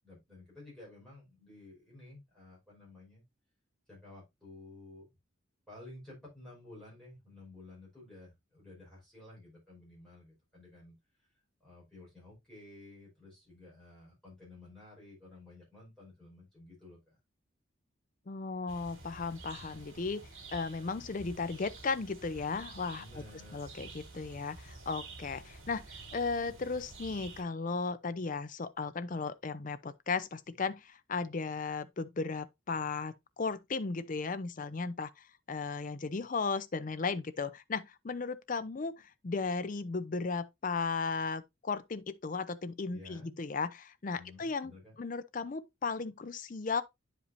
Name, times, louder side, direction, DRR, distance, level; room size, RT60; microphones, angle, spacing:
voice 1, 0.0-3.2 3.9-5.1 5.7-10.9 11.6-17.2 22.9-23.7 42.9-43.3 44.1-45.0, left 2 dB, 5° left, 5.2 m, -53 dB
voice 2, 18.3-20.2 20.5-23.0 23.5-44.7 45.0-46.8, left 4 dB, 40° left, 0.5 m, -36 dB
sound 1, 18.7-27.4, right 3 dB, 75° right, 2.5 m, -50 dB
9.4 x 5.1 x 2.7 m
head